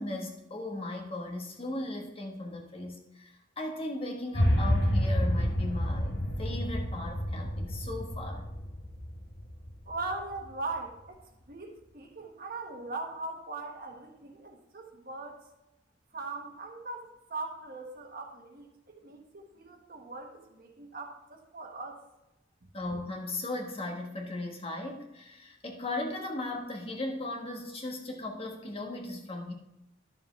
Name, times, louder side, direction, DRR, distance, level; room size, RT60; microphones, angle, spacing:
voice 1, 0.0-8.4 22.7-29.5, left 2 dB, 30° left, 0 dB, 1.4 m, -37 dB
sound 1, 4.3-10.5, equal, 75° left, 3.2 m, -29 dB
voice 2, 9.9-11.2 11.5-15.4 16.1-22.0, right 3 dB, 50° right, 2 dB, 1.5 m, -40 dB
11.5 x 7.0 x 3.3 m, 0.92 s
head